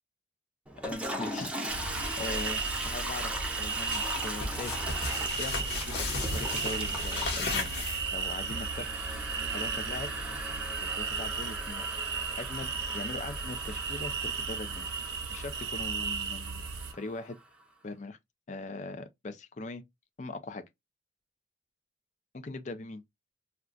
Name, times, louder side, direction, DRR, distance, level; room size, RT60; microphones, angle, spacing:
Toilet flush, 0.7-17.4, right 1 dB, 5° right, 0.5 m, -39 dB
voice 1, 0.8-3.3 3.6-4.8 5.0-10.1 10.8-11.9 12.4-16.7 16.9-17.4 17.8-18.2 18.5-19.8 20.2-20.6 22.3-23.0, left 3 dB, 45° left, 0.5 m, -41 dB
sound 1, 1.7-16.9, right 5 dB, 65° right, 0.6 m, -35 dB
sound 2, 3.9-8.4, left 3 dB, 70° left, 1.0 m, -35 dB
2.3 x 2.3 x 3.7 m
head